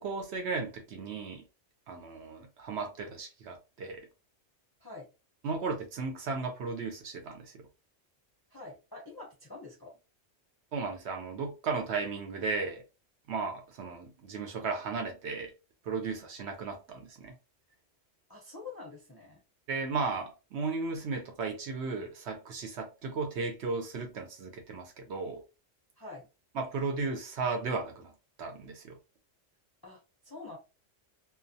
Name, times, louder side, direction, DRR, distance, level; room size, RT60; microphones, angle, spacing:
voice 1, 0.0-1.4 1.9-4.1 5.4-7.6 10.7-12.8 13.3-15.5 15.8-17.3 19.7-25.4 26.5-28.1 28.4-29.0, right 4 dB, 65° right, 0.8 m, -35 dB
voice 2, 8.5-10.0 18.3-19.4 26.0-26.3 29.8-30.6, left 3 dB, 25° left, 0.5 m, -46 dB
2.3 x 2.2 x 2.6 m
omnidirectional pair, 1.3 m